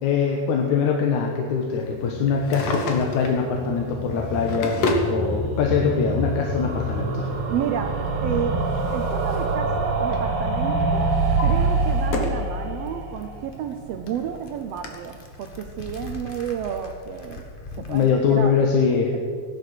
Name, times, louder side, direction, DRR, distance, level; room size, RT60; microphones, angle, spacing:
voice 1, 0.0-4.8 5.1-7.3 17.9-19.1, left 6 dB, 85° left, 1 dB, 2.6 m, -22 dB
sound 1, 1.9-14.8 15.1-15.2 15.4-15.5 15.7-15.8, right 2 dB, 85° right, 3.2 m, -26 dB
Drawer open or close, 2.3-3.4 4.2-5.1 6.2-6.3 8.1-9.6 9.9-10.3 10.8-12.5 12.9-13.0 13.7-13.8 14.1-14.2 14.8-14.9, left 2 dB, 60° left, 2.5 m, -30 dB
voice 2, 7.5-8.6 8.9-17.4 17.8-18.6, right 8 dB, 70° right, 6 dB, 1.6 m, -31 dB
sound 2, 12.8-18.5, left 3 dB, 40° left, 0.7 m, -42 dB
16.0 x 11.5 x 6.6 m, 2.1 s
omnidirectional pair, 3.3 m